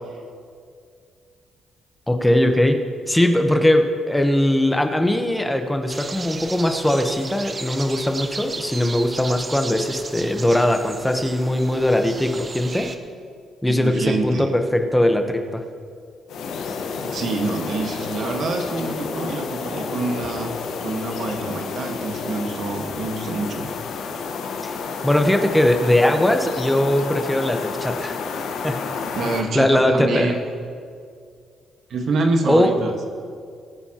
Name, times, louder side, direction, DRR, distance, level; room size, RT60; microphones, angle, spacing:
voice 1, 2.1-2.8 3.1-12.9 13.6-15.6 24.6-24.7 25.0-28.1 28.6-28.7 29.5-30.3 32.5-32.7, left 1 dB, 5° left, 5 dB, 1.0 m, -20 dB
sound 1, 5.9-13.0, right 3 dB, 30° right, 0.9 m, -34 dB
voice 2, 13.7-14.5 17.0-20.5 20.8-23.7 29.1-30.4 31.9-33.0, right 3 dB, 65° right, 3 dB, 1.5 m, -26 dB
sound 2, 16.3-29.4, left 5 dB, 85° left, 1.3 m, -30 dB
22.5 x 9.4 x 3.0 m, 2.3 s
cardioid pair, 90°, 0 cm